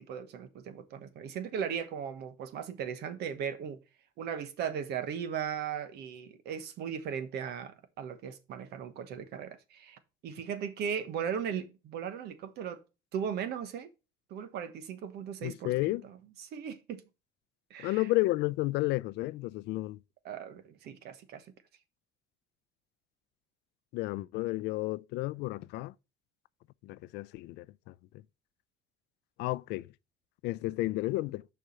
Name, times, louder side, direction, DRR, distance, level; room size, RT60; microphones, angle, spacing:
voice 1, 0.0-3.8 4.2-12.8 13.1-13.9 14.3-17.0 17.7-18.1 20.2-21.5, right 7 dB, 75° right, 1.2 m, -37 dB
voice 2, 15.4-16.0 17.8-20.0 23.9-25.9 26.8-27.9 29.4-29.9 30.4-31.4, left 19 dB, 85° left, 0.4 m, -32 dB
6.7 x 4.9 x 5.4 m
cardioid pair, 110°, 17 cm